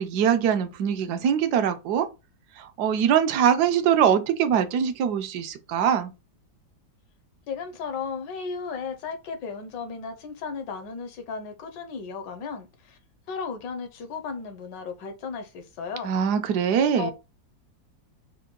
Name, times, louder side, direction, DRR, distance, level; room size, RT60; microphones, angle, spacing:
voice 1, 0.0-2.1 2.6-6.1 16.0-17.1, right 8 dB, 70° right, 1.1 m, -23 dB
voice 2, 7.5-13.0 13.3-16.1 17.0-17.1, left 5 dB, 75° left, 1.3 m, -35 dB
4.6 x 2.2 x 3.7 m
omnidirectional pair, 2.0 m